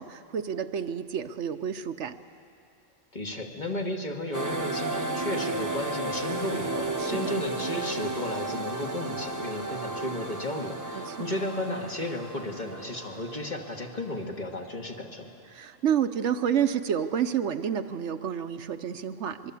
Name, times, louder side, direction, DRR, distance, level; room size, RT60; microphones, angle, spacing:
voice 1, 0.0-2.1 7.0-7.5 10.9-11.3 15.5-19.5, right 8 dB, 70° right, 10 dB, 1.1 m, -29 dB
voice 2, 3.1-15.3, left 1 dB, 40° left, 1 dB, 2.1 m, -34 dB
sound 1, 4.3-14.6, right 2 dB, 15° right, 1.0 m, -33 dB
24.5 x 22.5 x 8.3 m, 2.5 s
omnidirectional pair, 1.3 m